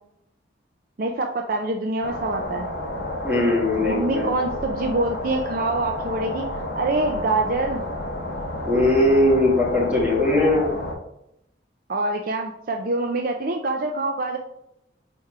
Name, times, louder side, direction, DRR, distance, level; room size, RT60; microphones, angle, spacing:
voice 1, 1.0-2.7 3.8-6.5 6.8-7.8 11.9-14.4, right 2 dB, 50° right, 3 dB, 0.4 m, -25 dB
sound 1, 2.0-10.9, left 1 dB, 60° left, 1.1 m, -31 dB
voice 2, 3.2-4.3 8.6-10.7, left 1 dB, 10° right, -5 dB, 1.9 m, -20 dB
4.7 x 4.3 x 4.8 m, 0.81 s
head